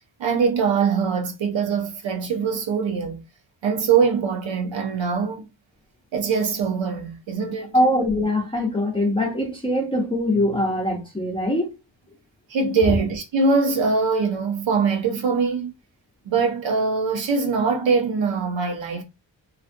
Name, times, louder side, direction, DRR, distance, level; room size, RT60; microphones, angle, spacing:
voice 1, 0.2-3.2 3.6-5.5 6.1-7.7 12.5-15.7 16.3-19.0, right 5 dB, 75° right, 0.8 m, -22 dB
voice 2, 7.7-11.7, left 1 dB, 10° left, 0.8 m, -22 dB
2.5 x 2.5 x 2.5 m
cardioid pair, 65°, 45 cm